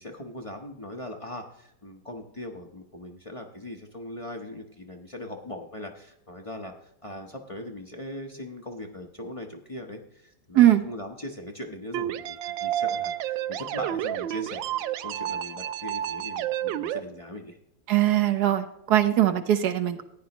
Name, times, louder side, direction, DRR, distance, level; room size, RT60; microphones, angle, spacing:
voice 1, 0.0-6.7 7.0-17.6, left 1 dB, 35° left, 1 dB, 0.5 m, -40 dB
sound 1, 11.9-17.0, right 11 dB, 90° right, 1.3 m, -30 dB
voice 2, 17.9-20.0, right 12 dB, 65° right, 8 dB, 1.3 m, -21 dB
14.5 x 9.4 x 3.0 m, 0.78 s
omnidirectional pair, 2.1 m